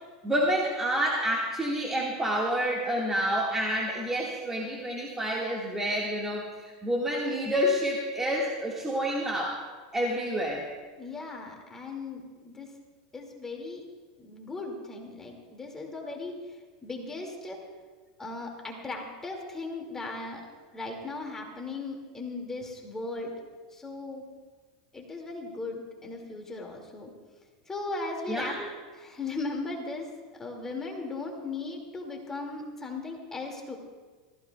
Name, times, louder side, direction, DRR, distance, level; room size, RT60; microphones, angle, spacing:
voice 1, 0.2-9.6 9.9-10.6 28.3-28.7, equal, 10° right, -3 dB, 1.8 m, -28 dB
voice 2, 11.0-12.7 13.1-13.9 14.2-17.6 18.2-20.4 20.7-23.4 23.7-24.2 24.9-27.1 27.7-28.5 28.9-30.1 30.3-33.8, left 3 dB, 15° left, 1 dB, 2.2 m, -37 dB
29.0 x 15.0 x 2.3 m, 1.4 s
supercardioid pair, 140°, 3 cm